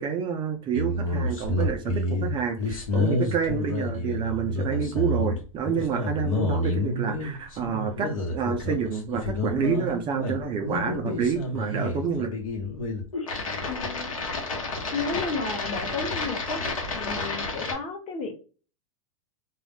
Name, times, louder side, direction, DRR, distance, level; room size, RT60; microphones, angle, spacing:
voice 1, 0.0-12.3, right 6 dB, 30° right, 5 dB, 0.4 m, -28 dB
sound 1, 0.7-17.7, left 2 dB, 80° left, 0.9 m, -29 dB
voice 2, 13.6-14.1 14.9-16.6 16.9-18.3, left 4 dB, 35° left, 3 dB, 0.8 m, -32 dB
2.3 x 2.0 x 3.4 m, 0.37 s
hypercardioid pair, 115°, 17 cm